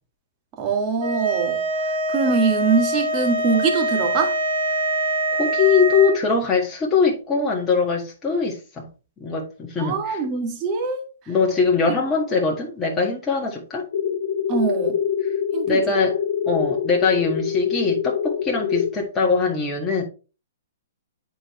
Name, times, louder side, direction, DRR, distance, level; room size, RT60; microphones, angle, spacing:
voice 1, 0.6-1.6 2.1-4.3 9.8-11.0 14.5-15.0 15.5-15.8, right 5 dB, 30° right, 2.1 m, -23 dB
sound 1, 1.0-6.2, right 1 dB, 55° right, 2.9 m, -24 dB
voice 2, 5.3-8.9 9.2-10.2 11.3-13.8 15.2-15.3 15.6-20.0, left 5 dB, 15° left, 1.7 m, -22 dB
sound 2, 13.9-18.9, left 8 dB, 65° left, 0.9 m, -25 dB
9.8 x 4.6 x 3.1 m
figure-of-eight pair, 120°, 0 cm